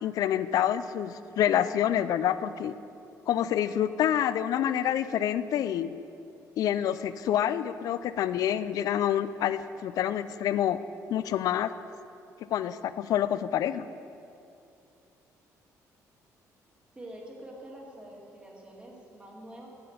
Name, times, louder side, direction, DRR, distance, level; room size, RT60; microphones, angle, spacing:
voice 1, 0.0-2.7 3.3-5.9 6.6-10.8 11.1-11.7 12.5-13.9, left 10 dB, 70° left, 14 dB, 0.4 m, -27 dB
voice 2, 17.0-19.7, right 1 dB, 15° right, -2 dB, 2.1 m, -46 dB
10.5 x 6.0 x 8.6 m, 2.6 s
cardioid pair, 115°, 6 cm